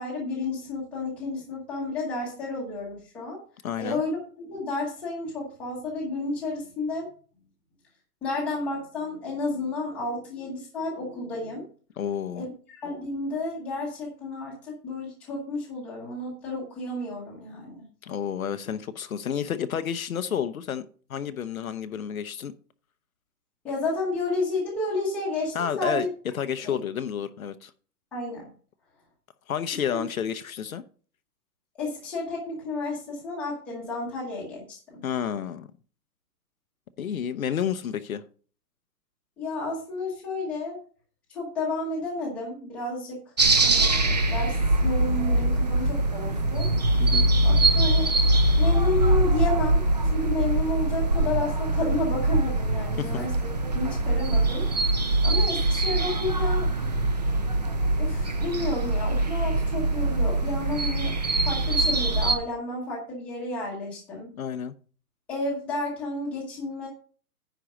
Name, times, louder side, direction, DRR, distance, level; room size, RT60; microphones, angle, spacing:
voice 1, 0.0-3.4 3.8-7.1 8.2-11.6 12.4-17.8 23.6-26.1 26.6-26.8 28.1-28.5 29.9-30.0 31.8-35.0 39.4-40.8 41.3-43.2 43.6-46.7 47.4-49.8 50.1-54.7 55.2-56.7 58.0-61.2 61.4-64.3 65.3-66.9, left 2 dB, 5° left, 1.0 m, -31 dB
voice 2, 3.6-4.0 12.0-12.5 18.0-22.5 25.5-26.1 26.4-27.7 29.5-30.8 35.0-35.7 37.0-38.2 47.0-47.2 53.0-53.2 64.3-64.7, left 8 dB, 60° left, 0.8 m, -30 dB
sound 1, 43.4-62.4, right 2 dB, 25° right, 0.6 m, -23 dB
10.0 x 4.6 x 6.2 m
hypercardioid pair, 175°, 47 cm